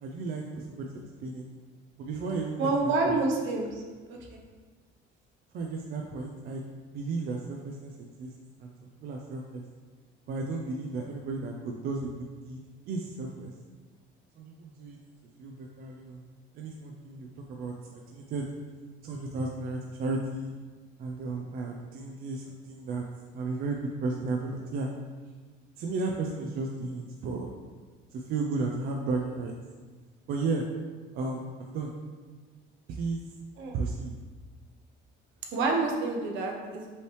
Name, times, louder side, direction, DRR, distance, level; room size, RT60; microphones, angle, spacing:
voice 1, 0.0-1.4 2.0-3.2 5.5-6.6 6.9-8.3 8.6-8.7 9.0-9.6 10.3-12.6 12.9-13.5 14.4-15.0 15.4-16.3 16.5-18.5 19.0-20.5 21.0-23.1 23.3-24.9 25.8-27.5 28.1-29.5 30.3-30.7 31.1-31.9 32.9-33.2 33.7-34.1, right 3 dB, 50° right, 1 dB, 0.4 m, -34 dB
voice 2, 2.6-3.8 4.1-4.4 33.6-33.8 35.5-36.9, right 3 dB, 65° right, 1 dB, 0.8 m, -28 dB
5.5 x 3.1 x 3.1 m, 1.4 s
cardioid pair, 170°, 20 cm